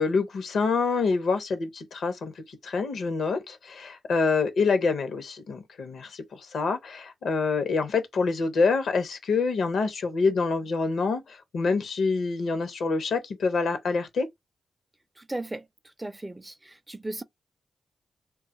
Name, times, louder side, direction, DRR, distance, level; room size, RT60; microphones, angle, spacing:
voice 1, 0.0-14.3, left 4 dB, 75° left, 0.7 m, -26 dB
voice 2, 15.2-15.7 16.0-17.2, right 2 dB, 20° right, 0.4 m, -36 dB
2.3 x 2.1 x 3.9 m
cardioid pair, 55°, 0 cm